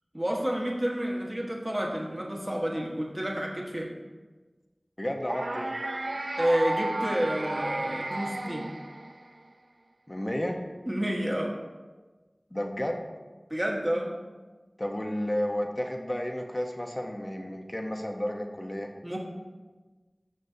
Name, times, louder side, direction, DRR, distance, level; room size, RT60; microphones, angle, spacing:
voice 1, 0.1-3.9 6.4-8.7 10.8-11.5 13.5-14.1 19.0-19.2, equal, 25° right, -2 dB, 1.5 m, -29 dB
voice 2, 5.0-5.7 10.1-10.6 12.5-13.0 14.8-18.9, left 1 dB, 35° left, 2 dB, 1.1 m, -32 dB
sound 1, 5.3-9.5, right 2 dB, 70° right, 0.5 m, -33 dB
14.0 x 6.5 x 2.8 m, 1.3 s
wide cardioid pair, 40°, 0 cm